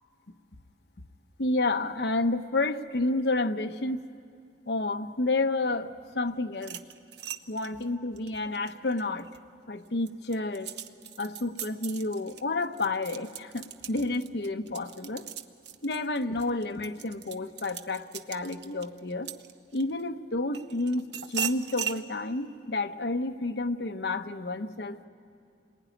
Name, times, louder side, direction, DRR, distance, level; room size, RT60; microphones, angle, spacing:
voice 1, 1.4-4.0 4.7-6.8 7.5-9.3 9.7-10.7 11.2-15.2 15.8-19.3 19.7-25.1, left 2 dB, 70° left, 7 dB, 1.0 m, -30 dB
sound 1, 6.5-9.4 9.9-20.0 20.5-22.0, right 9 dB, 75° right, 0.9 m, -39 dB
27.5 x 20.5 x 9.9 m, 2.3 s
head